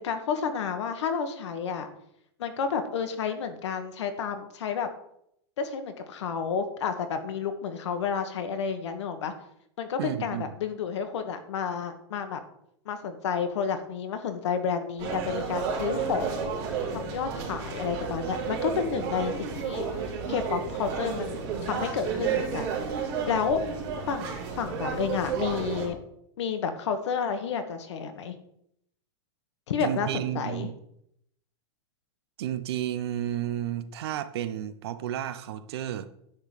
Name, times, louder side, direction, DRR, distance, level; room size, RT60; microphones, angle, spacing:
voice 1, 0.0-1.9 2.4-4.9 5.6-9.3 9.8-12.4 12.8-16.5 16.9-19.9 20.3-22.7 23.3-23.6 24.1-26.0 26.4-28.4 29.7-30.7, left 6 dB, 85° left, 1.5 m, -30 dB
voice 2, 10.0-10.5 29.8-30.8 32.4-36.1, right 11 dB, 65° right, 0.8 m, -32 dB
sound 1, 15.0-25.9, right 6 dB, 40° right, 2.9 m, -32 dB
10.5 x 3.9 x 6.7 m
supercardioid pair, 165°, 14 cm